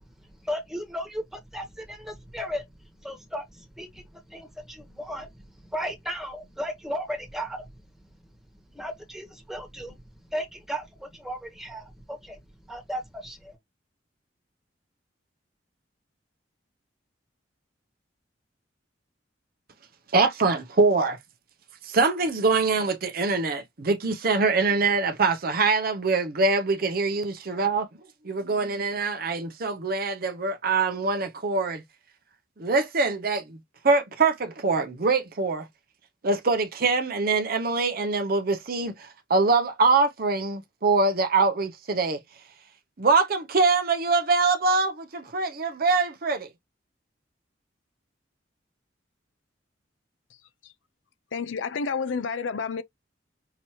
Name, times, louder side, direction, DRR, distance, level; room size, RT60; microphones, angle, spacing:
voice 1, 0.4-2.6 3.0-4.0 4.3-5.3 5.7-7.7 8.7-10.0 10.3-12.4 12.7-13.5, equal, ahead, 1.3 m, -35 dB
voice 2, 20.1-21.2 21.8-27.9 28.2-31.8 32.6-33.6 33.8-35.7 36.2-42.2 43.0-46.5, right 3 dB, 50° right, 0.7 m, -24 dB
voice 3, 51.3-52.8, left 5 dB, 90° left, 0.5 m, -30 dB
5.8 x 2.9 x 3.0 m
head